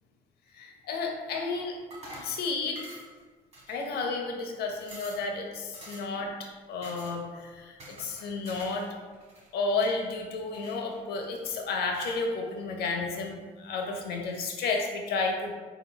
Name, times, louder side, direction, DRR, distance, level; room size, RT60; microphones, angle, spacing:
voice 1, 0.5-1.8 2.2-2.8 3.7-6.3 6.7-8.9 9.5-15.5, left 3 dB, 70° left, 2 dB, 0.7 m, -32 dB
sound 1, 1.9-2.4 2.8-3.2 3.5-4.1 4.5-4.6 4.8-5.3 5.7-6.2 6.8-7.2 7.8-8.9 9.1-10.0 10.5-11.2 11.9-12.3, right 1 dB, 40° right, 1.4 m, -47 dB
4.0 x 4.0 x 2.2 m, 1.4 s
supercardioid pair, 85°, 17 cm